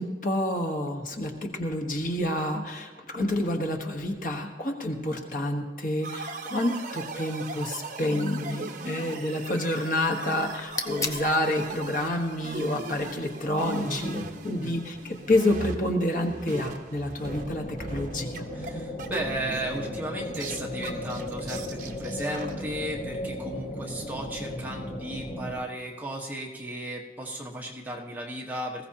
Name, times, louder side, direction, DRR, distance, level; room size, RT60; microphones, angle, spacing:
voice 1, 0.0-18.4, left 1 dB, 50° left, 2 dB, 1.3 m, -28 dB
sound 1, 6.0-17.5 17.8-22.5, right 3 dB, 45° right, 1.0 m, -39 dB
sound 2, 10.5-15.5, left 2 dB, 20° left, 0.8 m, -40 dB
sound 3, 17.2-25.5, left 1 dB, 85° left, 4.4 m, -36 dB
voice 2, 18.5-28.9, right 1 dB, 10° right, -2 dB, 1.3 m, -35 dB
20.0 x 15.5 x 2.9 m, 1.4 s
head